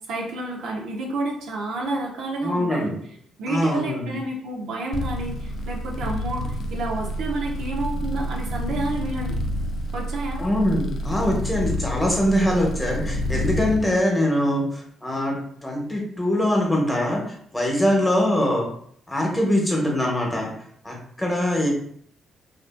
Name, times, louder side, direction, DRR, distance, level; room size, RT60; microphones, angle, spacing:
voice 1, 0.1-3.0 3.4-9.4 9.9-10.4 21.6-21.7, right 2 dB, 85° right, -1 dB, 0.5 m, -29 dB
voice 2, 2.4-2.9 3.5-4.1 10.4-18.7 19.1-20.5 20.8-21.7, left 1 dB, 10° left, -1 dB, 0.8 m, -23 dB
sound 1, 4.9-13.8, equal, 55° left, 0.3 m, -28 dB
2.5 x 2.4 x 2.4 m, 0.64 s
cardioid pair, 90°, 0 cm